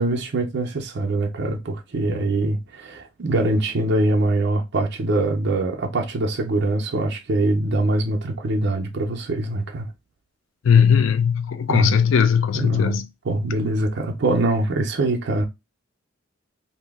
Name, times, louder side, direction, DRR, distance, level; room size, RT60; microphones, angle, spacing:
voice 1, 0.0-9.9 11.7-12.0 12.5-13.0 13.2-15.4, right 2 dB, 60° right, 0.6 m, -23 dB
voice 2, 10.6-13.1, left 7 dB, 75° left, 0.4 m, -18 dB
2.7 x 2.0 x 3.4 m
head